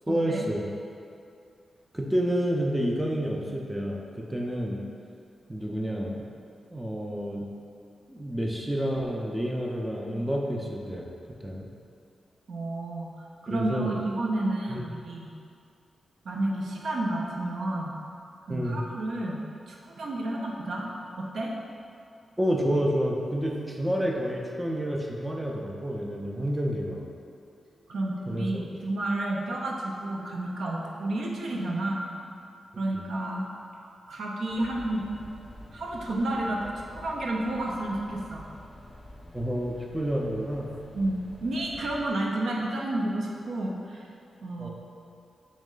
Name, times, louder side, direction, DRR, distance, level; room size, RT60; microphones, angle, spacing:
voice 1, 0.1-0.6 1.9-4.8 5.5-6.2 6.7-7.5 8.1-11.1 11.4-11.7 13.5-14.0 14.7-14.8 18.5-18.8 22.4-27.0 28.3-28.6 39.3-40.7 44.6-44.7, equal, 10° right, -1 dB, 0.4 m, -29 dB
voice 2, 12.5-13.1 13.4-15.3 16.2-17.9 18.5-19.4 19.7-21.5 27.9-32.0 32.8-33.4 34.1-35.1 35.7-38.4 40.9-44.1 44.4-44.7, right 1 dB, 75° right, -2 dB, 0.5 m, -31 dB
sound 1, 34.5-42.1, left 1 dB, 15° left, 0.8 m, -48 dB
3.1 x 3.1 x 3.7 m, 2.5 s
wide cardioid pair, 110°, 0 cm